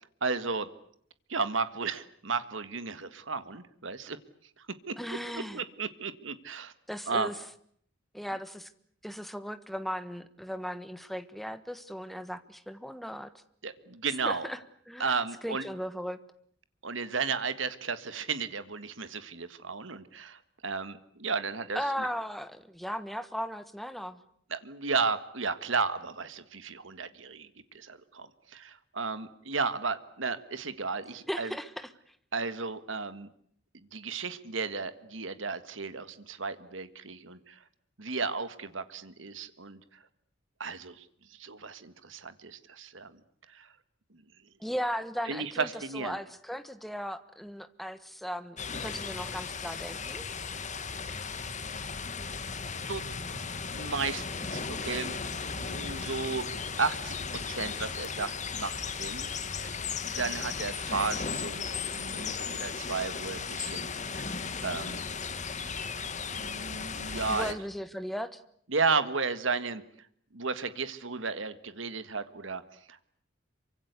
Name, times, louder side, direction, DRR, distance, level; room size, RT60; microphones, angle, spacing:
voice 1, 0.2-0.7 1.3-4.2 4.6-5.0 5.3-6.7 7.1-7.3 13.6-14.5 15.0-15.6 16.8-22.1 24.5-31.5 32.3-33.3 33.9-37.6 38.0-39.8 40.6-41.1 41.4-43.2 43.5-43.7 45.3-46.2 52.9-53.0 53.7-55.1 55.6-56.5 56.8-59.3 59.6-59.7 60.0-64.3 64.6-65.0 65.6-65.8 66.2-67.6 68.7-69.8 70.3-72.6 72.9-73.0, right 4 dB, 70° right, 12 dB, 1.7 m, -34 dB
voice 2, 5.0-5.6 6.9-7.3 8.1-8.7 9.0-13.3 14.2-14.6 14.9-16.2 21.7-24.2 31.3-31.9 44.6-45.7 45.9-50.3 67.3-68.4, equal, ahead, 11 dB, 1.4 m, -37 dB
sound 1, 48.6-67.5, left 5 dB, 40° left, 1.9 m, -36 dB
sound 2, 50.0-62.2, equal, 65° left, 4.4 m, -52 dB
27.0 x 24.5 x 8.3 m, 0.65 s
head